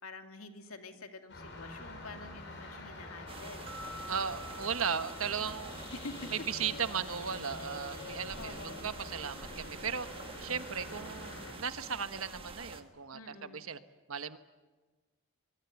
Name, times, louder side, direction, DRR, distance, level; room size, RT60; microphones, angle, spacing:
voice 1, 0.0-3.7 5.9-6.3 8.3-8.9 13.1-13.7, left 3 dB, 85° left, 5 dB, 2.5 m, -47 dB
sound 1, 1.3-11.5, left 2 dB, 55° left, 6.1 m, -46 dB
sound 2, 3.3-12.8, right 3 dB, 25° right, 1.5 m, -48 dB
sound 3, 3.7-6.8, equal, 45° right, 2.5 m, -50 dB
voice 2, 4.1-5.9 6.3-10.1 10.4-13.8 14.1-14.4, right 7 dB, 75° right, 10 dB, 1.3 m, -36 dB
24.5 x 23.0 x 8.3 m, 1.3 s
head